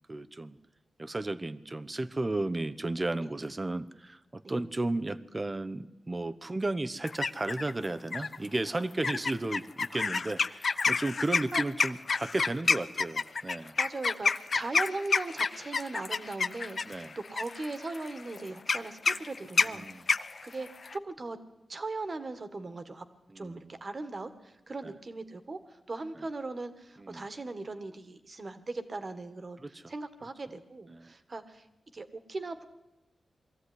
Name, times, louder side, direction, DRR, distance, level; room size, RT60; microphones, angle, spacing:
voice 1, 0.1-0.6 1.0-13.8 16.8-17.2 19.6-20.0 23.3-23.7 24.8-24.9 26.2-26.3 27.0-27.3 29.6-29.9 30.9-31.1, right 2 dB, 25° right, 14 dB, 0.9 m, -34 dB
sound 1, 7.0-7.7 8.1-8.5 9.0-21.0, left 4 dB, 55° left, 0.6 m, -29 dB
voice 2, 13.8-20.1 20.4-21.4 21.7-23.1 23.4-31.7 31.9-32.6, right 3 dB, 45° right, 10 dB, 1.9 m, -39 dB
21.5 x 14.5 x 9.9 m, 0.98 s
wide cardioid pair, 80°, 0 cm